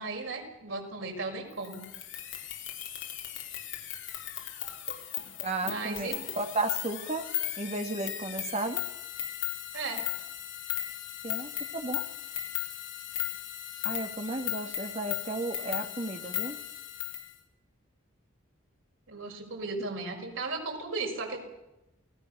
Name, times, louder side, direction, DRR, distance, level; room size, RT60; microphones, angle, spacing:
voice 1, 0.0-1.8 5.6-6.2 9.7-10.0 19.1-21.4, right 3 dB, 90° right, 2 dB, 6.1 m, -36 dB
sound 1, 1.6-17.3, left 12 dB, 70° left, 4.1 m, -36 dB
voice 2, 5.4-7.2 7.6-8.8 11.2-12.0 13.8-16.6, right 2 dB, 35° right, 6 dB, 2.1 m, -34 dB
28.5 x 19.5 x 6.9 m, 0.96 s
head